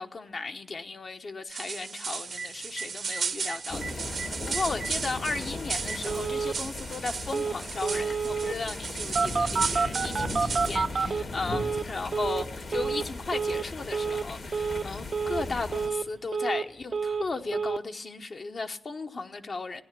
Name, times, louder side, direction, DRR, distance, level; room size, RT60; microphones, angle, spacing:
voice 1, 0.0-4.1 4.4-19.8, left 3 dB, 60° left, 1.0 m, -35 dB
sound 1, 1.5-10.8, right 5 dB, 80° right, 1.0 m, -35 dB
Telephone, 2.4-2.5 2.8-2.9 3.1-3.2 3.5-3.9 4.2-4.3 4.5-4.9 5.3-5.4 5.9-6.6 7.3-7.6 7.8-8.6 9.2-11.9 12.1-12.5 12.7-13.1 13.3-13.7 13.9-14.3 14.5-14.9 15.1-15.5 15.7-16.7 16.9-17.3 17.5-17.8, right 5 dB, 60° right, 0.5 m, -29 dB
sound 2, 3.7-15.9, left 2 dB, 75° left, 2.5 m, -37 dB
16.5 x 10.0 x 7.5 m
cardioid pair, 50°, 0 cm